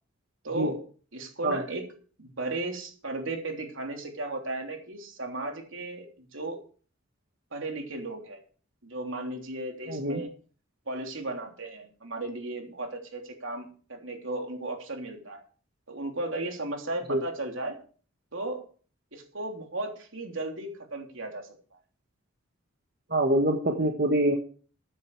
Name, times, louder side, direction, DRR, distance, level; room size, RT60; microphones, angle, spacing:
voice 1, 0.4-0.8 1.1-1.8 2.2-6.6 7.5-8.4 8.8-10.3 10.9-15.4 15.9-17.8 18.3-18.6 19.1-21.5, right 2 dB, 70° right, 3 dB, 3.2 m, -35 dB
voice 2, 9.9-10.2 17.1-17.2 23.1-24.3, right 1 dB, 50° right, 2 dB, 1.6 m, -25 dB
14.5 x 9.6 x 4.8 m, 0.42 s
head